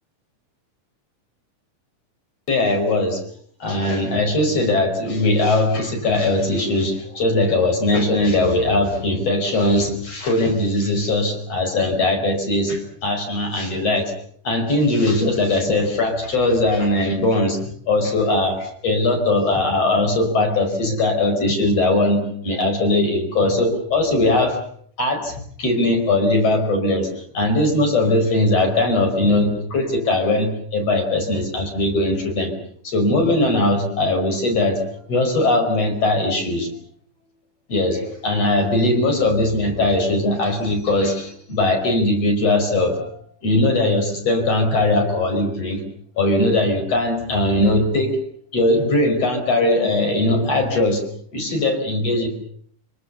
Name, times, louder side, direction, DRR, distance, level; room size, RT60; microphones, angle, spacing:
voice 1, 2.5-3.2 3.6-14.1 14.4-17.6 17.9-24.6 25.0-32.5 32.8-36.7 37.7-43.1 43.4-45.8 46.2-48.2 48.5-51.0 51.3-52.3, left 2 dB, 55° left, 5 dB, 6.3 m, -20 dB
25.5 x 24.5 x 7.0 m, 0.62 s
omnidirectional pair, 3.5 m